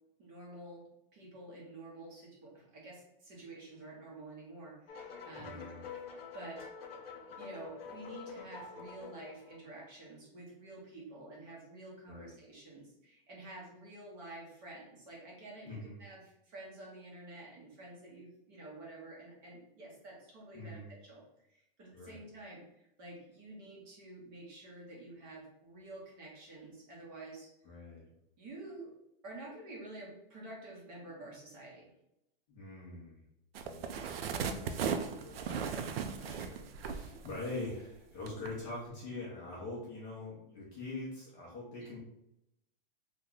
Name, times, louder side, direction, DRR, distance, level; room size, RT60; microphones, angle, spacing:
voice 1, 0.2-5.6 6.3-6.9 7.4-21.2 21.5-27.5 28.4-28.9 29.2-31.9 41.8-41.9, right 2 dB, 25° right, -4 dB, 0.7 m, -49 dB
sound 1, 4.9-9.9, left 5 dB, 75° left, 0.7 m, -47 dB
voice 2, 5.3-5.8 12.1-12.4 15.6-16.0 20.5-20.9 21.9-22.2 27.6-28.1 32.5-33.2 33.6-35.8 36.1-42.0, left 2 dB, 20° left, -6 dB, 0.5 m, -44 dB
sound 2, 33.5-37.9 38.3-38.5, right 6 dB, 80° right, 0.5 m, -37 dB
2.9 x 2.2 x 3.6 m, 0.84 s
supercardioid pair, 170°, 29 cm